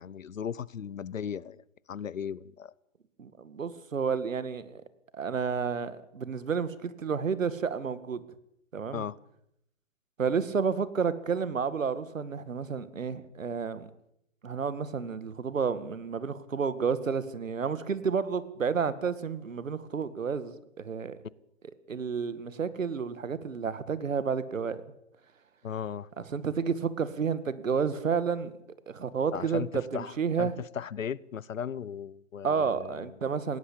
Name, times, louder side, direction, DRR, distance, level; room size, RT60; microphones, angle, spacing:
voice 1, 0.0-2.7 8.9-9.2 25.6-26.1 29.3-33.1, left 8 dB, 85° left, 23 dB, 1.0 m, -37 dB
voice 2, 3.2-4.8 5.1-8.2 8.7-9.0 10.2-13.9 14.4-21.2 21.9-24.8 26.2-28.5 28.9-30.6 32.4-33.6, right 6 dB, 80° right, 15 dB, 2.1 m, -31 dB
19.5 x 17.0 x 8.7 m, 0.77 s
hypercardioid pair, 140°, 38 cm